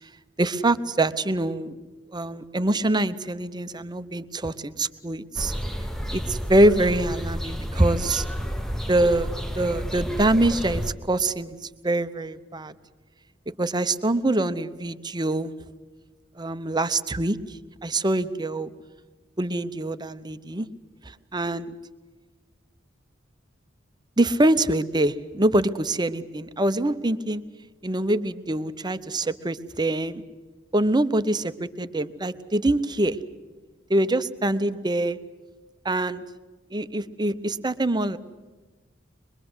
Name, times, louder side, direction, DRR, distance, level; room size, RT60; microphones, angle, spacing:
voice 1, 0.4-1.8 2.1-5.5 6.1-8.2 8.9-11.6 11.8-12.7 13.6-15.5 16.4-18.7 19.4-20.7 21.0-21.7 24.2-27.4 27.8-30.2 30.7-33.2 33.9-35.2 35.8-36.2 36.7-38.2, right 1 dB, 20° right, 12 dB, 0.8 m, -24 dB
sound 1, 5.4-10.9, equal, ahead, 1.0 m, -31 dB
24.5 x 22.0 x 8.0 m, 1.3 s
head